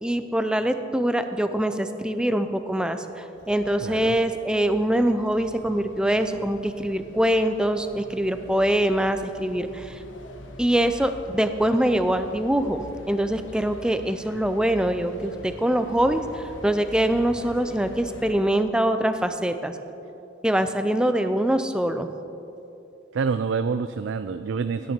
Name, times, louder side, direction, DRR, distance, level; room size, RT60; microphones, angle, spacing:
voice 1, 0.0-10.0 10.6-19.8 20.4-22.1, right 1 dB, 5° right, 9 dB, 0.5 m, -24 dB
sound 1, 3.3-18.3, left 1 dB, 90° left, 1.1 m, -45 dB
voice 2, 3.8-4.2 18.3-18.4 23.1-24.9, right 5 dB, 80° right, 11 dB, 0.4 m, -27 dB
17.5 x 9.3 x 4.4 m, 2.9 s
head